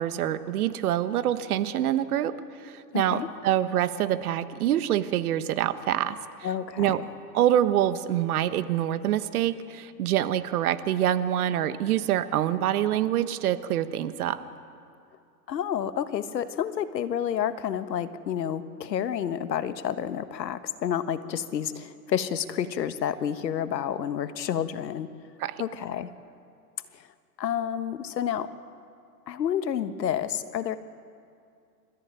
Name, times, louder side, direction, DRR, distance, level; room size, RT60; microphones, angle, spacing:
voice 1, 0.0-2.3 2.6-6.2 6.8-7.0 7.3-14.4 25.4-25.5, right 11 dB, 60° right, 12 dB, 1.4 m, -25 dB
voice 2, 2.9-3.3 6.4-7.0 15.5-25.1 25.6-26.1 26.9-27.1 27.4-28.5 29.3-30.8, left 9 dB, 85° left, 11 dB, 1.5 m, -29 dB
28.5 x 14.5 x 9.1 m, 2.4 s
hypercardioid pair, 135°, 49 cm